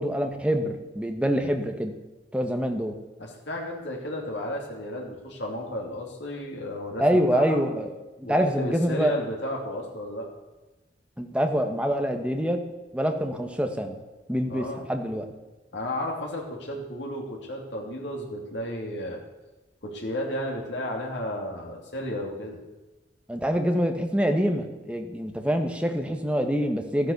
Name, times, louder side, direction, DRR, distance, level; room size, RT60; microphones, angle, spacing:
voice 1, 0.0-1.9 2.3-3.0 7.0-7.9 8.3-9.2 11.2-12.6 12.9-14.0 14.3-15.3 23.3-27.1, equal, 5° right, 4 dB, 1.3 m, -25 dB
voice 2, 3.2-7.6 8.2-10.3 14.5-14.9 15.7-19.2 19.8-22.6, left 1 dB, 75° left, -1 dB, 3.0 m, -33 dB
13.5 x 10.5 x 6.7 m, 1.1 s
head